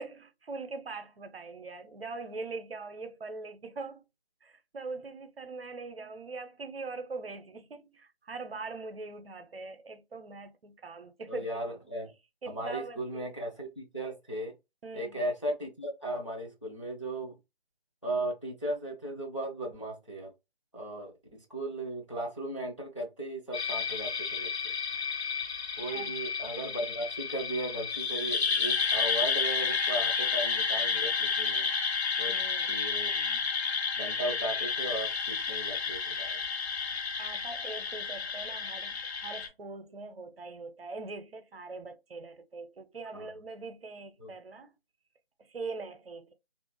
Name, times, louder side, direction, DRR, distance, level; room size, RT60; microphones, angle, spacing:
voice 1, 0.0-4.0 4.4-11.5 12.4-13.3 14.8-15.2 25.9-26.2 32.3-32.7 37.2-44.7 45.4-46.3, right 3 dB, 65° right, 0.6 m, -42 dB
voice 2, 11.3-12.1 12.5-14.5 14.9-17.4 18.0-20.3 20.7-24.5 25.8-31.7 32.2-32.3 32.7-33.4 34.0-36.4 43.1-43.3 44.2-44.3, right 1 dB, 30° left, 0.5 m, -36 dB
sound 1, 23.5-39.5, left 5 dB, 80° left, 0.9 m, -31 dB
2.4 x 2.1 x 3.0 m
figure-of-eight pair, 175°, 31 cm